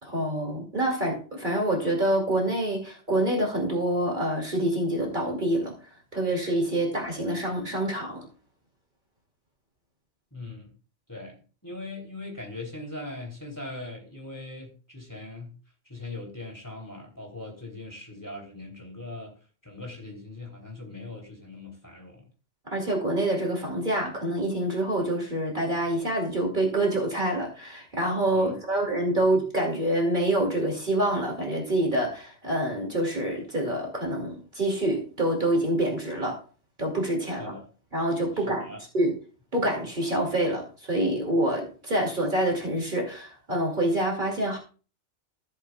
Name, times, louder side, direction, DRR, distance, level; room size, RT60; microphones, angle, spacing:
voice 1, 0.0-5.7 6.1-8.2 22.7-36.4 36.8-37.5 37.9-38.7 38.9-39.1 39.5-44.6, right 1 dB, 45° right, 0 dB, 2.6 m, -26 dB
voice 2, 10.3-10.7 11.1-15.5 15.8-19.3 19.6-22.3 28.3-28.8 37.4-37.7 38.3-38.8, left 2 dB, 15° left, -1 dB, 3.0 m, -40 dB
15.0 x 7.8 x 2.3 m, 0.36 s
omnidirectional pair, 1.2 m